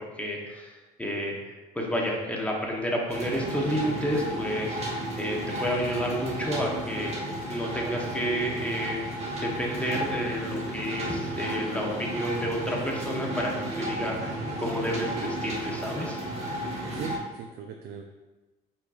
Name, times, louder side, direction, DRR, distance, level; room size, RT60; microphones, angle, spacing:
voice 1, 0.2-1.4 1.7-7.1 7.5-9.0 9.4-14.3 14.6-16.2, equal, 10° left, -1 dB, 0.9 m, -30 dB
sound 1, 3.1-17.2, right 1 dB, 40° right, 1.2 m, -33 dB
voice 2, 16.9-18.0, right 7 dB, 75° right, 2 dB, 0.4 m, -39 dB
4.9 x 4.1 x 2.4 m, 1.2 s
cardioid pair, 110°, 17 cm